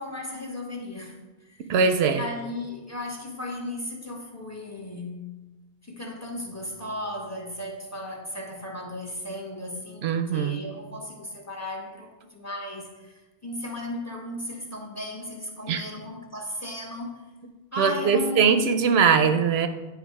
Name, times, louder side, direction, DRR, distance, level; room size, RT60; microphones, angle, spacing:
voice 1, 0.0-1.7 2.0-5.2 5.8-17.2 17.7-18.7, left 1 dB, 15° left, 1 dB, 0.9 m, -36 dB
voice 2, 1.7-2.2 10.0-10.6 15.7-15.8 17.8-19.7, right 6 dB, 75° right, 8 dB, 0.8 m, -21 dB
9.5 x 3.5 x 4.7 m, 1.2 s
omnidirectional pair, 1.1 m